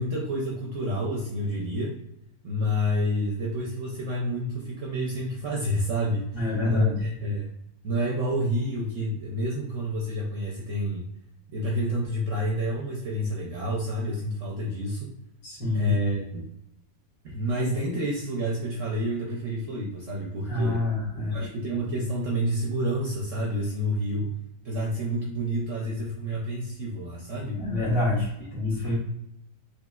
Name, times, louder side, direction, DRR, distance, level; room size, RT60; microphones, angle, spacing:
voice 1, 0.0-2.0 2.4-7.5 7.8-11.1 11.5-15.1 15.7-16.5 17.2-20.8 21.3-24.3 24.6-27.6 28.8-28.9, equal, 60° right, -2 dB, 0.8 m, -29 dB
voice 2, 6.3-7.0 15.4-15.9 20.5-21.4 27.4-28.9, left 2 dB, 50° left, -6 dB, 1.9 m, -27 dB
4.0 x 3.0 x 2.3 m, 0.80 s
omnidirectional pair, 1.8 m